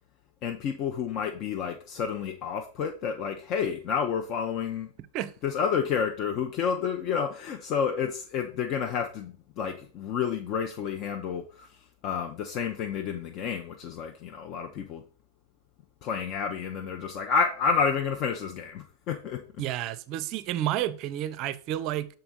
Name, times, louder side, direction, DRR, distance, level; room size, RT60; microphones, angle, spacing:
voice 1, 0.4-4.9 5.4-11.7 12.0-15.0 16.0-19.4, left 6 dB, 40° left, 0.6 m, -30 dB
voice 2, 19.6-22.1, right 12 dB, 40° right, 0.5 m, -30 dB
6.8 x 3.9 x 4.0 m
figure-of-eight pair, 90°, 0 cm